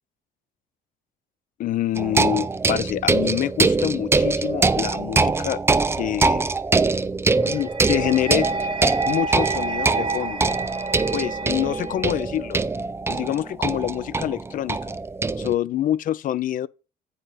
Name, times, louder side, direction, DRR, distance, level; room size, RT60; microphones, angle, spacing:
voice 1, 1.6-5.6 6.0-6.4 7.4-8.5 9.1-10.5 11.1-12.6 13.1-15.0 15.4-16.7, left 12 dB, 55° left, 0.4 m, -26 dB
sound 1, 2.0-15.5, right 3 dB, 15° right, 0.4 m, -23 dB
sound 2, 7.5-12.5, right 3 dB, 30° right, 1.1 m, -30 dB
8.0 x 5.4 x 4.9 m
cardioid pair, 110°, 17 cm